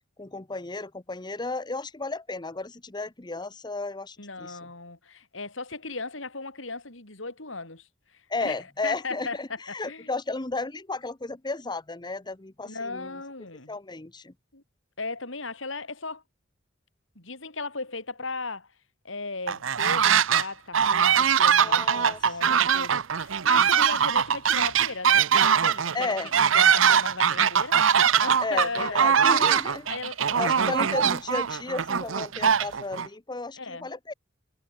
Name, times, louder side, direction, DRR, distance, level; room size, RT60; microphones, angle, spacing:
voice 1, 0.2-4.6 8.3-9.5 9.7-13.1 13.7-14.3 21.6-22.7 25.9-26.3 28.4-29.9 30.3-34.1, left 3 dB, 20° left, 1.0 m, -33 dB
voice 2, 4.2-10.1 12.6-13.8 14.5-14.6 15.0-16.2 17.1-18.7 19.0-27.8 28.2-29.5 29.8-30.9 33.6-33.9, left 3 dB, 75° left, 4.9 m, -37 dB
sound 1, 19.5-20.4 20.7-33.1, right 7 dB, 80° right, 0.8 m, -22 dB
head